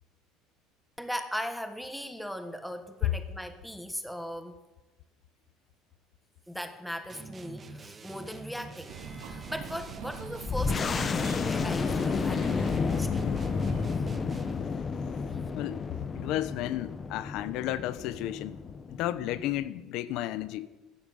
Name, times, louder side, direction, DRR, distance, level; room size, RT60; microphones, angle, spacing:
voice 1, 1.0-4.6 6.5-13.4, equal, ahead, 1.3 m, -38 dB
sound 1, 7.1-14.7, right 3 dB, 25° right, 1.6 m, -45 dB
sound 2, 8.9-13.9, right 6 dB, 75° right, 2.8 m, -43 dB
sound 3, 10.5-19.7, left 5 dB, 30° left, 0.9 m, -31 dB
voice 2, 15.5-15.9 16.1-18.6 18.9-20.7, left 14 dB, 65° left, 1.0 m, -33 dB
15.0 x 14.5 x 6.6 m
cardioid pair, 120°, 0 cm